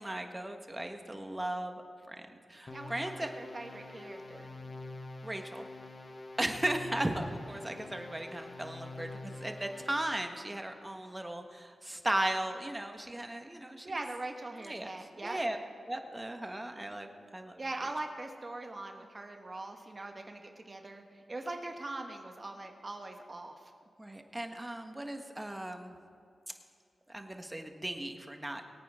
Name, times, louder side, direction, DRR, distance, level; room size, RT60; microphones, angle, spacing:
voice 1, 0.0-3.3 5.2-5.6 6.4-13.9 14.6-14.9 15.2-15.6 15.9-17.6 24.0-25.9 27.1-28.6, right 1 dB, 20° right, 5 dB, 1.4 m, -36 dB
sound 1, 2.7-10.2, left 2 dB, 40° left, 1.2 m, -46 dB
voice 2, 2.7-4.5 13.8-15.4 17.6-23.7, right 2 dB, 40° right, 4 dB, 1.4 m, -41 dB
22.5 x 9.0 x 3.7 m, 2.5 s
cardioid pair, 50°, 0 cm